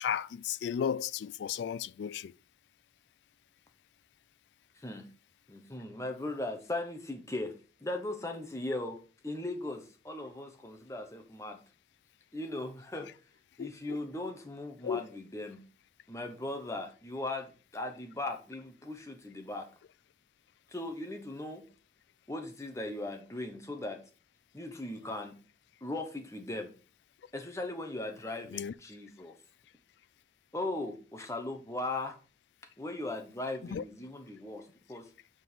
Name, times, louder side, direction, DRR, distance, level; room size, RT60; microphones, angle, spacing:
voice 1, 0.0-2.3 13.6-14.0 14.8-15.0 28.5-28.7 33.7-33.8, left 8 dB, 85° left, 0.3 m, -34 dB
voice 2, 4.7-5.1 5.5-7.6 7.8-9.0 9.2-11.6 12.3-13.1 13.6-15.6 16.1-19.7 20.7-21.6 22.3-24.0 24.5-25.4 25.8-26.7 27.3-29.3 30.5-32.2 32.8-35.1, left 2 dB, 15° left, 1.1 m, -38 dB
6.0 x 5.3 x 4.6 m
head